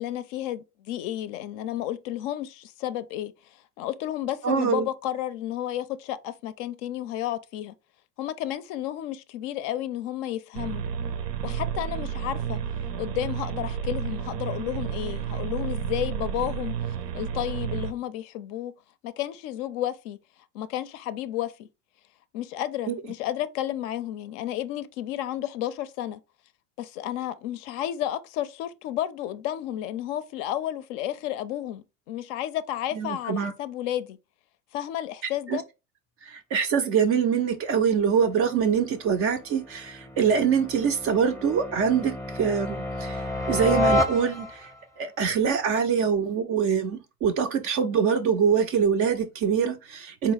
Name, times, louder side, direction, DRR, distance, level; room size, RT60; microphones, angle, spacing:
voice 1, 0.0-3.3 3.8-7.7 8.2-10.8 11.4-12.6 13.0-16.7 17.1-18.7 19.0-20.2 20.5-21.7 22.3-26.2 26.8-34.2 34.7-35.6, left 12 dB, 55° left, 0.5 m, -32 dB
voice 2, 4.4-4.9 22.9-23.0 32.9-33.5 35.5-35.6 36.2-44.7 45.0-50.3, right 7 dB, 30° right, 0.3 m, -24 dB
sound 1, 10.5-17.9, right 8 dB, 80° right, 0.7 m, -31 dB
sound 2, 38.4-44.8, left 2 dB, 5° left, 0.6 m, -30 dB
4.1 x 2.1 x 3.9 m
hypercardioid pair, 80°, 47 cm